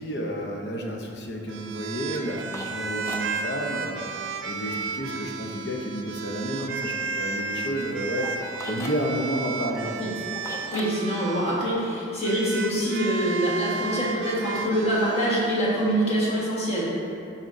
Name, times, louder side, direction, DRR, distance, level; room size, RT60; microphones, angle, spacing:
voice 1, 0.0-4.1 4.4-8.3 8.6-10.0, equal, 60° left, 1 dB, 0.7 m, -31 dB
sound 1, 1.5-11.6 12.2-16.0, right 4 dB, 80° right, 0.4 m, -33 dB
sound 2, 1.8-4.8 6.8-10.8, left 1 dB, 15° left, 0.4 m, -42 dB
voice 2, 10.6-16.9, right 1 dB, 30° left, -7 dB, 1.4 m, -25 dB
10.5 x 4.3 x 2.6 m, 2.7 s
head